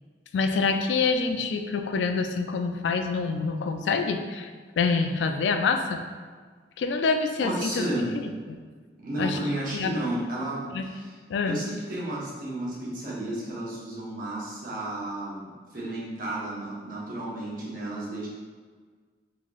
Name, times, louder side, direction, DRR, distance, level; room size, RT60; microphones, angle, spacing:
voice 1, 0.3-4.5 4.8-6.0 6.8-7.9 8.5-8.6 9.2-9.4 9.7-10.0 10.7-10.8 11.3-11.6, left 4 dB, 85° left, 6 dB, 0.3 m, -26 dB
voice 2, 7.4-8.2 9.0-11.1 11.4-18.3, right 1 dB, 50° right, -6 dB, 1.0 m, -32 dB
3.9 x 3.1 x 2.4 m, 1.5 s
head